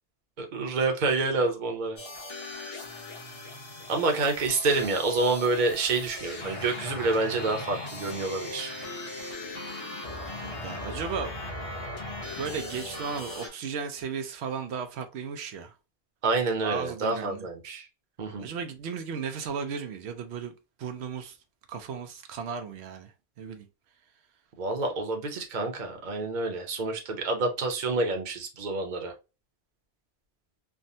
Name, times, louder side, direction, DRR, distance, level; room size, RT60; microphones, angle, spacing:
voice 1, 0.4-2.0 3.9-8.7 16.2-17.9 18.2-18.5 24.6-29.1, right 3 dB, 50° right, 0.8 m, -28 dB
sound 1, 2.0-13.5, left 1 dB, 35° left, 0.9 m, -38 dB
voice 2, 10.4-11.3 12.4-15.7 16.6-17.5 18.4-20.5 20.8-21.4 21.7-23.7, right 6 dB, 85° right, 0.8 m, -35 dB
3.4 x 2.1 x 2.6 m
omnidirectional pair, 1.1 m